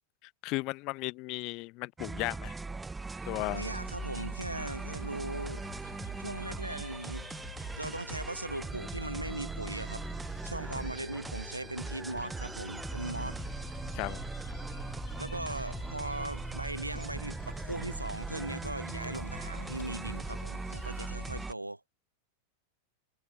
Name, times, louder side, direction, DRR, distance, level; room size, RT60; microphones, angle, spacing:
voice 1, 0.4-2.5 3.3-3.7 13.9-14.2, left 24 dB, 40° left, 0.6 m, -35 dB
sound 1, 2.0-21.5, right 3 dB, 10° right, 0.7 m, -39 dB
sound 2, 3.3-21.5, left 10 dB, 60° left, 6.6 m, -49 dB
voice 2, 3.5-5.6 6.2-7.3 7.8-10.0 10.4-13.4 15.2-21.8, right 2 dB, 85° right, 0.4 m, -39 dB
figure-of-eight pair, 90°, 0 cm